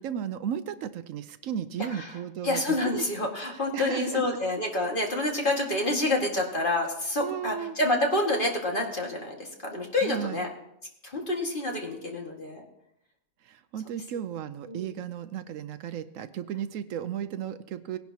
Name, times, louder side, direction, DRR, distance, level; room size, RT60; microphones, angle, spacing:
voice 1, 0.0-3.0 3.5-4.4 7.2-7.8 10.0-10.4 13.4-18.0, right 9 dB, 75° right, 12 dB, 0.9 m, -34 dB
voice 2, 2.4-10.5 11.0-12.6 14.7-14.9, left 2 dB, 40° left, 0 dB, 1.9 m, -28 dB
18.5 x 10.5 x 2.8 m, 0.80 s
omnidirectional pair, 1.4 m